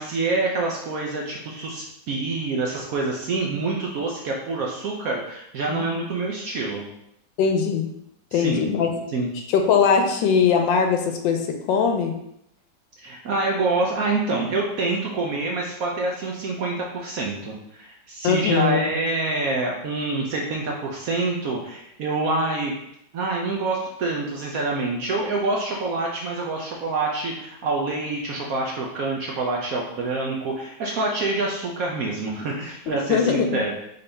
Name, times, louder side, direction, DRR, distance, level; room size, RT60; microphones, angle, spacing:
voice 1, 0.0-6.8 8.3-8.7 9.1-9.3 13.0-22.7 23.1-33.7, right 3 dB, 65° right, -1 dB, 0.9 m, -26 dB
voice 2, 7.4-7.9 8.3-8.9 9.5-12.1 18.2-18.9 32.9-33.6, left 6 dB, 90° left, 4 dB, 1.4 m, -21 dB
3.9 x 3.7 x 3.3 m, 0.77 s
omnidirectional pair, 2.0 m